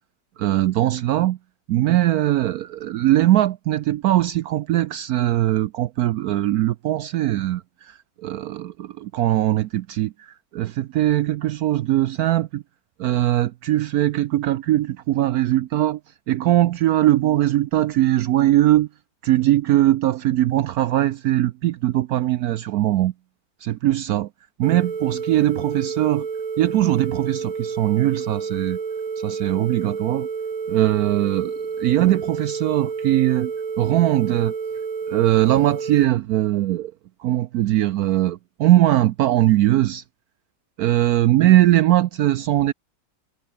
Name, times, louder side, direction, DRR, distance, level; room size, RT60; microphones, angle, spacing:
voice 1, 0.4-1.4 1.7-7.6 8.2-10.1 10.5-12.6 13.0-16.0 16.3-18.9 19.2-23.1 23.6-24.3 24.6-26.3 26.6-28.8 29.2-30.3 30.7-33.5 33.8-34.5 35.1-36.9 37.2-40.0 40.8-42.7, right 14 dB, 70° right, 1.0 m, -20 dB
sound 1, 24.6-36.0, right 5 dB, 55° right, 2.3 m, -29 dB
omnidirectional pair, 1.8 m